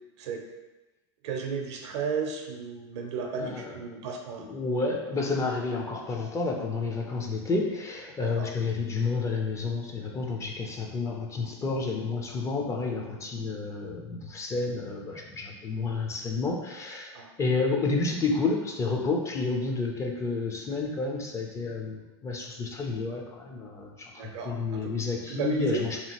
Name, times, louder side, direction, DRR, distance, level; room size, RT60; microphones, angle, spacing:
voice 1, 1.2-4.4 8.3-8.5 17.1-17.3 24.2-24.9 25.3-25.8, right 5 dB, 75° right, 1 dB, 0.6 m, -34 dB
voice 2, 3.4-3.8 4.4-26.0, left 3 dB, 20° left, 1 dB, 0.4 m, -30 dB
2.8 x 2.5 x 2.9 m, 1.1 s
hypercardioid pair, 115°, 15 cm